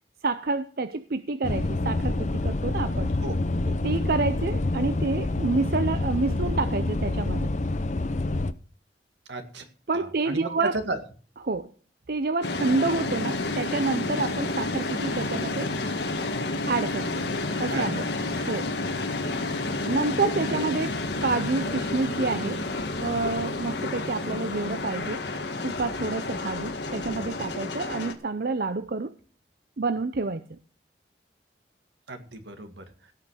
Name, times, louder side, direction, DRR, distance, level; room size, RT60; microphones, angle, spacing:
voice 1, 0.2-3.1 3.8-7.5 9.9-10.7 11.4-11.7 12.1-15.7 16.7-17.2 17.6-18.1 18.5-18.7 19.9-20.9 21.2-22.6 23.0-25.3 25.6-29.1 29.8-30.6, right 3 dB, 55° right, 11 dB, 0.6 m, -28 dB
sound 1, 1.4-8.5, left 2 dB, 40° left, 0.6 m, -27 dB
voice 2, 9.3-9.7 9.9-10.5 10.9-11.0 17.7-18.0 18.8-18.9 20.5-20.6 32.1-32.8, right 2 dB, 85° right, 7 dB, 2.1 m, -35 dB
sound 2, 12.4-28.1, left 2 dB, 75° left, 1.7 m, -30 dB
17.0 x 5.9 x 6.4 m, 0.40 s
head